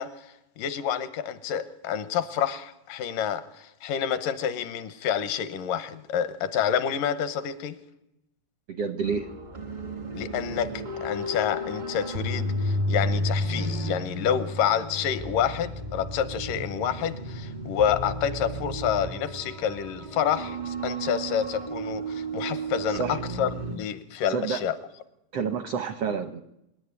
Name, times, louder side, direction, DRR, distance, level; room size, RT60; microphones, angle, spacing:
voice 1, 0.0-7.8 10.1-24.7, left 8 dB, 75° left, 13 dB, 2.5 m, -28 dB
voice 2, 8.7-9.3 22.9-23.2 24.3-24.6 25.3-26.4, right 5 dB, 75° right, 9 dB, 1.4 m, -29 dB
sound 1, 9.0-23.8, equal, 45° right, 0.5 m, -32 dB
26.0 x 11.0 x 9.7 m, 0.86 s
omnidirectional pair, 4.0 m